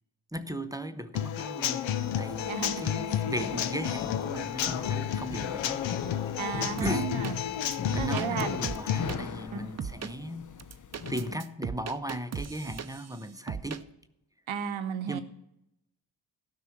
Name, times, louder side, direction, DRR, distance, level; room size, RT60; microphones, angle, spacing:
voice 1, 0.3-5.9 6.8-7.1 7.9-10.6 11.1-13.9 15.0-15.2, right 1 dB, 10° right, 0.8 m, -37 dB
Human voice / Acoustic guitar / Drum, 1.1-9.1, left 10 dB, 75° left, 0.7 m, -31 dB
sound 1, 2.0-11.4, left 6 dB, 40° left, 0.8 m, -40 dB
voice 2, 2.5-2.9 5.2-5.3 6.4-8.6 9.5-10.0 14.5-15.2, right 7 dB, 80° right, 1.0 m, -35 dB
sound 2, 6.8-7.3 7.7-9.2 9.8-10.1 10.6-13.2 13.5-13.8, right 6 dB, 35° right, 0.7 m, -37 dB
12.5 x 6.1 x 8.2 m
cardioid pair, 55°, 46 cm